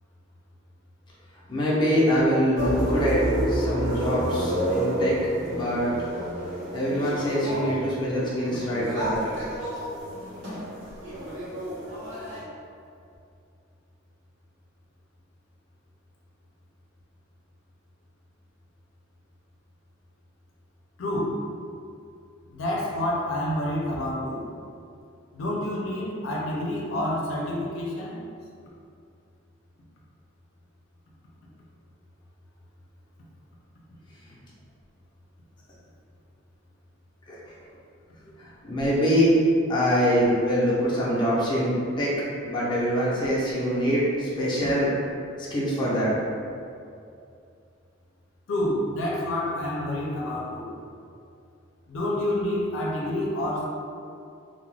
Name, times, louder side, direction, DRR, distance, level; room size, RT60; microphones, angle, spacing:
voice 1, 1.5-3.2 3.5-5.1 5.5-5.9 6.7-9.2 37.3-37.4 38.4-39.4 39.7-42.1 42.4-44.9 45.5-46.1, equal, 25° left, -7 dB, 0.5 m, -24 dB
sound 1, 2.6-12.4, equal, 70° right, 0.8 m, -29 dB
voice 2, 21.0-21.4 22.5-24.4 25.3-28.2 48.5-50.7 51.9-53.6, left 1 dB, 85° left, -3 dB, 0.5 m, -28 dB
2.3 x 2.1 x 3.2 m, 2.5 s
head